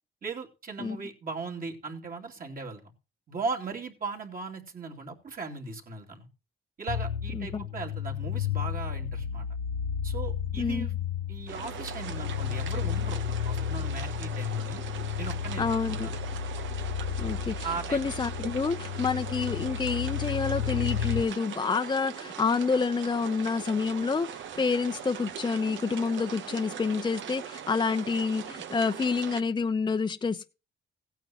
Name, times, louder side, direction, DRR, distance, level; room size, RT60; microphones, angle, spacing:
voice 1, 0.2-2.8 3.3-6.3 6.8-9.5 10.0-10.9 11.3-14.8 15.2-16.2 17.6-18.1, right 4 dB, 45° right, 1 dB, 3.0 m, -38 dB
sound 1, 6.9-21.2, left 9 dB, 70° left, 0.9 m, -32 dB
voice 2, 7.3-7.6 10.6-10.9 15.6-16.1 17.2-24.3 24.6-30.5, left 4 dB, 20° left, 7 dB, 0.8 m, -28 dB
sound 2, 11.5-29.4, right 8 dB, 75° right, 1.1 m, -41 dB
16.5 x 9.1 x 3.0 m, 0.30 s
cardioid pair, 90°, 20 cm